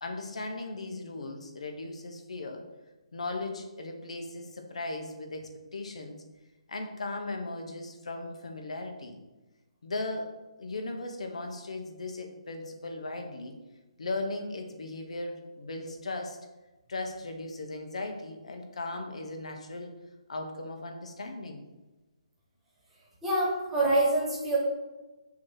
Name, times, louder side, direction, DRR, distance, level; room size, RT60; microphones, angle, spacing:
voice 1, 0.0-2.6 3.1-6.2 6.7-9.2 9.8-10.3 10.6-13.5 14.0-16.4 16.9-19.9 20.3-21.6, left 2 dB, 75° left, 4 dB, 1.2 m, -37 dB
voice 2, 23.2-24.6, right 2 dB, 5° right, -6 dB, 1.4 m, -25 dB
6.2 x 3.1 x 5.7 m, 1.1 s
hypercardioid pair, 175°, 3 cm